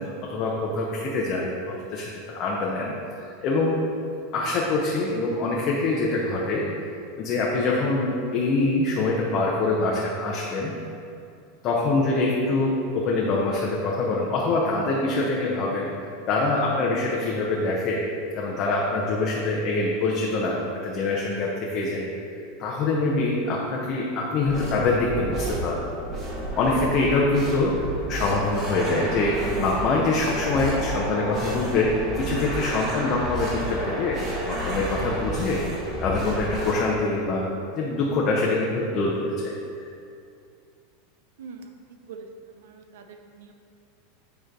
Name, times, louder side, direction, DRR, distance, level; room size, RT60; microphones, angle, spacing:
voice 1, 0.0-2.9 3.4-3.8 4.3-6.7 7.2-10.8 11.6-15.9 16.3-18.0 18.4-22.1 22.6-26.0 26.6-27.7 28.1-34.2 34.5-35.6 36.0-37.5 37.7-39.9, left 3 dB, 35° left, -3 dB, 0.8 m, -24 dB
sound 1, 24.4-36.7, right 1 dB, 25° right, 1.6 m, -31 dB
voice 2, 41.4-43.5, right 4 dB, 80° right, 5 dB, 0.7 m, -44 dB
9.0 x 3.1 x 5.3 m, 2.5 s
supercardioid pair, 150°, 0 cm